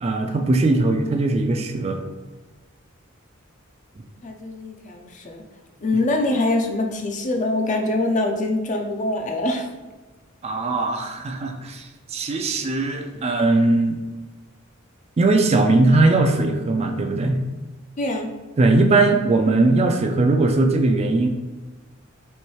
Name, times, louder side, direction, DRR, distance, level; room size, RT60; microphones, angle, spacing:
voice 1, 0.0-2.0 10.4-14.0 15.2-17.4 18.6-21.3, right 2 dB, 30° right, 4 dB, 0.3 m, -19 dB
voice 2, 4.2-5.4 5.8-9.7 18.0-18.3, left 2 dB, 40° left, 3 dB, 0.5 m, -24 dB
4.4 x 3.1 x 3.1 m, 1.2 s
head